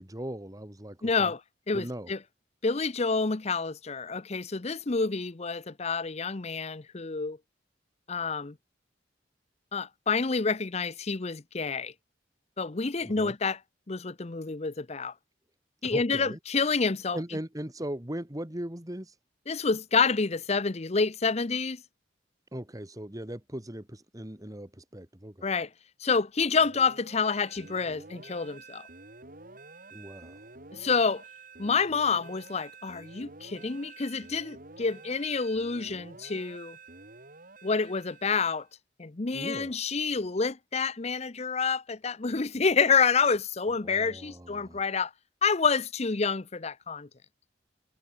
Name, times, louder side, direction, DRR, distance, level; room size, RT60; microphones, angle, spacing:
voice 1, 0.0-1.3 1.7-2.1 13.0-13.3 15.8-16.4 17.1-19.2 22.5-25.5 29.9-30.5 39.3-39.7 43.8-44.8, right 1 dB, 20° right, 1.9 m, -39 dB
voice 2, 1.0-1.4 1.7-2.2 2.6-7.4 8.1-8.6 9.7-11.9 12.6-13.6 13.9-15.1 15.8-17.2 19.5-21.8 25.4-25.7 26.0-28.9 30.7-31.2 31.6-36.8 37.6-38.7 39.0-45.1 45.4-47.1, left 4 dB, 35° left, 0.7 m, -28 dB
sound 1, 26.6-38.7, right 3 dB, 50° right, 4.5 m, -49 dB
head